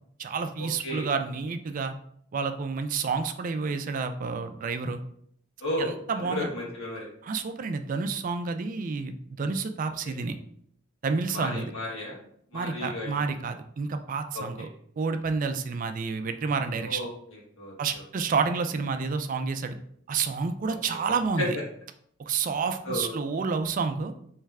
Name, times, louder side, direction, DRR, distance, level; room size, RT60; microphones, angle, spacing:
voice 1, 0.2-1.9 2.3-5.0 5.8-6.5 7.2-10.4 11.0-11.7 12.5-14.7 15.0-17.0 17.8-19.8 20.1-21.6 22.2-24.1, right 4 dB, 40° right, 7 dB, 0.3 m, -29 dB
voice 2, 6.2-7.1 11.3-12.2 12.5-13.2 14.3-14.4 16.8-17.1 17.6-18.0 21.4-21.5 22.8-23.1, left 1 dB, 85° left, -4 dB, 1.6 m, -33 dB
3.3 x 3.2 x 3.5 m, 0.66 s
head